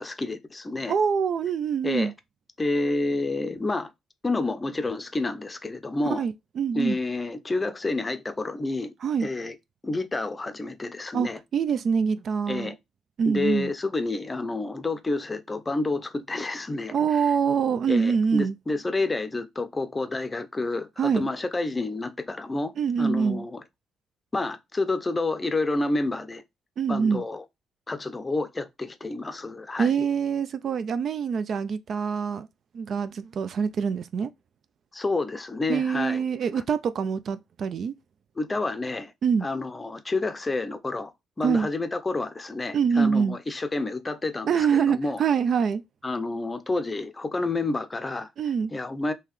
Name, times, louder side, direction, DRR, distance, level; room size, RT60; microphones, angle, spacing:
voice 1, 0.0-0.9 1.8-2.1 2.6-3.9 4.2-6.2 6.7-8.9 9.2-9.5 9.8-11.4 12.5-12.8 13.3-17.3 17.9-23.6 24.3-26.4 26.9-27.4 27.9-29.9 34.9-36.2 38.4-39.1 39.4-41.1 41.4-45.2 46.0-48.3 48.7-49.1, left 2 dB, 20° left, 0.5 m, -29 dB
voice 2, 0.9-2.1 6.1-7.0 9.0-9.3 11.1-12.7 13.2-13.7 16.9-18.6 21.0-21.3 22.8-23.4 26.8-27.2 29.8-32.5 32.7-34.3 35.7-37.9 39.2-39.5 41.4-41.7 42.7-43.4 44.5-45.8 48.4-48.7, right 6 dB, 60° right, 0.3 m, -25 dB
3.7 x 2.8 x 3.0 m
cardioid pair, 90°, 0 cm